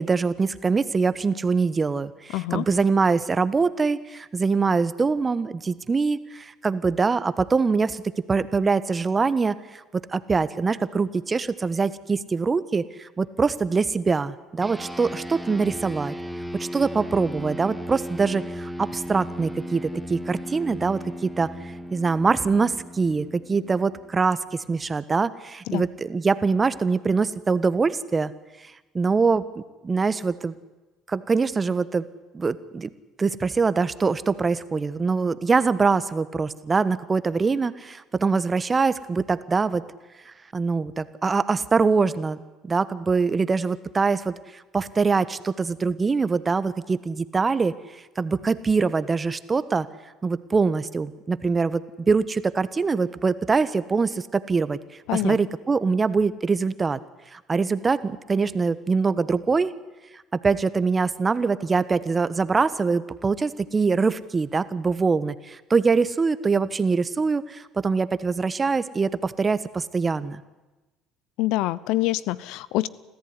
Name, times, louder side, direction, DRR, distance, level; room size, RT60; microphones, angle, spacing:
voice 1, 0.0-8.0 8.3-9.6 10.1-16.1 16.5-28.3 28.9-30.5 31.1-32.0 32.3-32.9 33.2-39.8 40.3-44.3 44.7-47.7 48.2-49.9 50.2-54.8 55.1-57.0 57.3-59.7 60.3-70.4, right 4 dB, 25° right, 15 dB, 1.2 m, -23 dB
voice 2, 2.3-2.6 25.7-25.8 55.1-55.4 71.4-72.9, left 17 dB, 75° left, 20 dB, 0.7 m, -25 dB
sound 1, 14.6-24.3, equal, 5° right, 1.8 m, -36 dB
26.0 x 14.5 x 9.8 m, 1.1 s
supercardioid pair, 80°, 0 cm